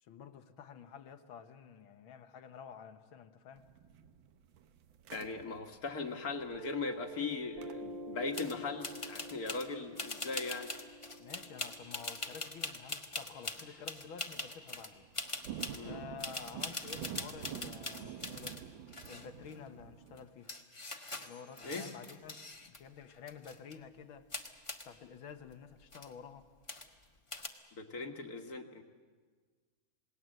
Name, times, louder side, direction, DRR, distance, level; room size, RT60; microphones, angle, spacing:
voice 1, 0.0-3.6 11.2-15.1 15.8-18.6 19.1-20.5 21.2-24.3 24.9-26.5, left 7 dB, 75° left, 8 dB, 2.0 m, -50 dB
sound 1, 3.5-11.6 11.8-11.9 12.6-12.9 13.3-13.7 14.0-14.1 14.4-20.3, right 9 dB, 70° right, 1.6 m, -49 dB
voice 2, 5.1-10.7 15.7-16.0 21.6-21.9 27.7-28.8, left 4 dB, 45° left, 5 dB, 1.9 m, -39 dB
Piano, 6.5-13.6, right 1 dB, 40° right, 0.9 m, -49 dB
sound 2, 8.3-8.6 8.8-9.7 10.0-14.9 15.1-15.8 16.2-18.6 18.9-19.6 20.2-20.3 20.5-22.8 23.1-23.8 24.3-24.9 25.5-25.6 25.8-26.1 26.7-27.0 27.3-27.5, left 2 dB, 20° left, 1.1 m, -42 dB
27.5 x 19.5 x 7.8 m, 1.5 s
omnidirectional pair, 2.3 m